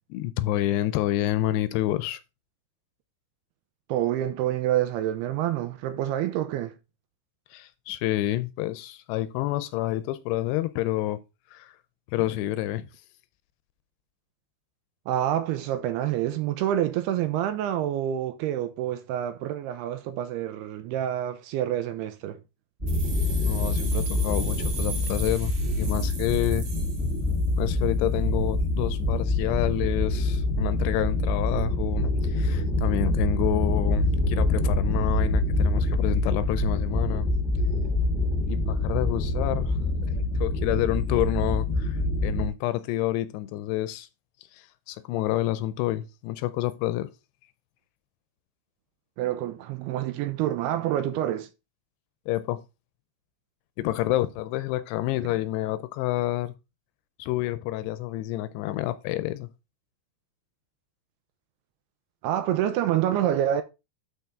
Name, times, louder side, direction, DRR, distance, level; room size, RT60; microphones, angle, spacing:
voice 1, 0.1-2.2 7.5-11.2 11.5-11.7 12.1-12.9 23.4-26.7 27.6-37.3 38.5-39.8 40.1-44.1 44.5-47.1 52.3-52.6 53.8-56.5 57.2-59.5, left 15 dB, 85° left, 2.6 m, -28 dB
voice 2, 3.9-6.7 15.1-22.4 49.2-51.5 62.2-63.6, right 11 dB, 80° right, 2.4 m, -27 dB
sound 1, 22.8-42.5, left 2 dB, 20° right, 2.1 m, -25 dB
sound 2, 22.9-27.7, right 5 dB, 50° right, 2.7 m, -39 dB
12.5 x 4.3 x 3.5 m
omnidirectional pair, 5.0 m